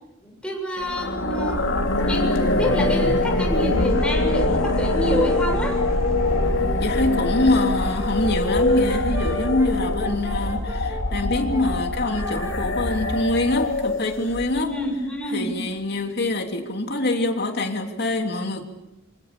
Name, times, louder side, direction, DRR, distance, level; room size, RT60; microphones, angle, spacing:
voice 1, 0.2-1.7 2.1-5.8 14.5-15.5, equal, 5° left, 1 dB, 7.5 m, -27 dB
sound 1, 0.8-14.9, left 2 dB, 75° left, 2.7 m, -24 dB
Brass instrument, 1.0-6.6 7.5-13.4, equal, 15° right, 3.4 m, -38 dB
sound 2, 1.5-10.6, right 1 dB, 65° right, 1.2 m, -30 dB
voice 2, 6.8-14.7 15.3-18.6, left 2 dB, 55° left, 4 dB, 3.1 m, -24 dB
27.0 x 25.0 x 6.9 m, 0.93 s
head